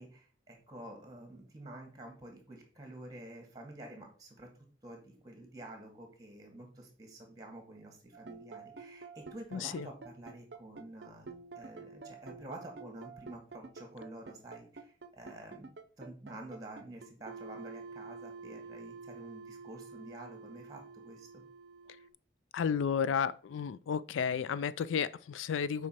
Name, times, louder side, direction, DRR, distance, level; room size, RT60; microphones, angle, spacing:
voice 1, 0.0-4.5 4.8-15.7 16.0-21.4, right 1 dB, 20° right, 2.0 m, -49 dB
sound 1, 8.1-22.1, right 4 dB, 60° right, 0.6 m, -48 dB
voice 2, 9.5-9.9 22.5-25.9, left 7 dB, 80° left, 0.3 m, -32 dB
7.4 x 4.8 x 4.4 m
head